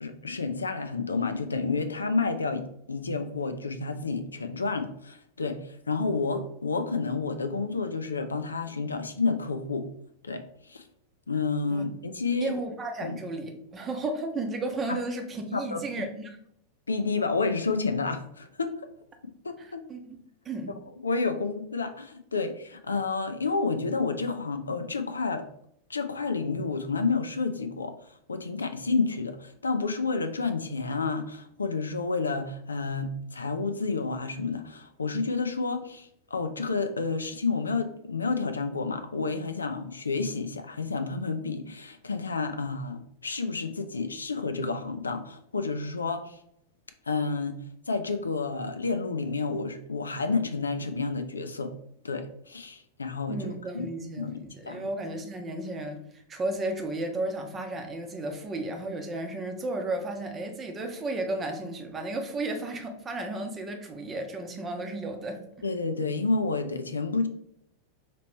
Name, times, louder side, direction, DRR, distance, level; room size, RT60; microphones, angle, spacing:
voice 1, 0.0-9.9 10.2-10.8 11.3-12.5 13.0-13.2 15.5-15.8 16.9-18.8 19.4-19.9 21.0-25.5 25.9-46.4 47.1-47.6 47.9-51.7 52.0-53.9 54.2-54.9 65.6-67.3, left 4 dB, 75° left, 9 dB, 0.4 m, -30 dB
voice 2, 12.4-16.3 19.6-20.2 20.4-20.8 53.3-56.0 56.3-65.4, right 2 dB, 20° right, 4 dB, 0.8 m, -33 dB
5.0 x 3.0 x 3.0 m, 0.72 s
figure-of-eight pair, 90°, 0 cm